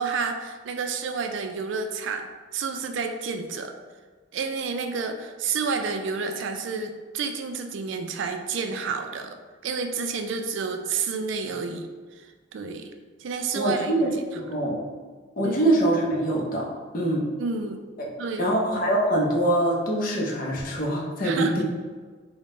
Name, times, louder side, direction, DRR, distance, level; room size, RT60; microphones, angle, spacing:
voice 1, 0.0-2.3 2.5-3.7 4.3-9.4 9.6-11.9 12.5-12.9 13.2-13.9 15.4-15.6 17.4-17.8 18.2-18.5 20.8-20.9 21.2-21.6, right 5 dB, 70° right, 5 dB, 0.3 m, -30 dB
voice 2, 13.5-14.8 15.4-16.7 16.9-17.2 18.0-18.1 18.4-21.6, right 1 dB, 45° left, -2 dB, 0.6 m, -24 dB
3.7 x 2.1 x 3.6 m, 1.5 s
head